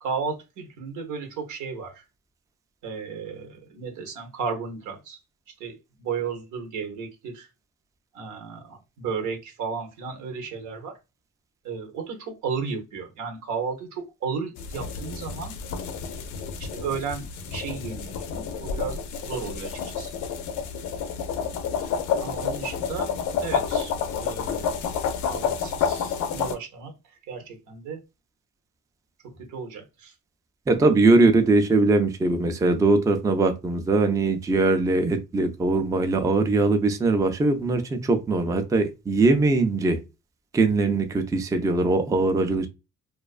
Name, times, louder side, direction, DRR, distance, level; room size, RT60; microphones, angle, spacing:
voice 1, 0.0-2.0 2.8-5.2 5.6-7.5 8.1-10.9 11.6-15.5 16.5-20.1 22.2-23.1 23.4-23.9 24.2-24.8 25.3-26.9 27.3-28.0 29.4-30.1, right 5 dB, 85° right, 0.8 m, -34 dB
sound 1, 14.6-26.6, left 6 dB, 75° left, 0.5 m, -29 dB
voice 2, 30.7-40.0 40.5-42.7, right 3 dB, 10° right, 0.3 m, -21 dB
2.3 x 2.2 x 2.3 m
cardioid pair, 90°, 30 cm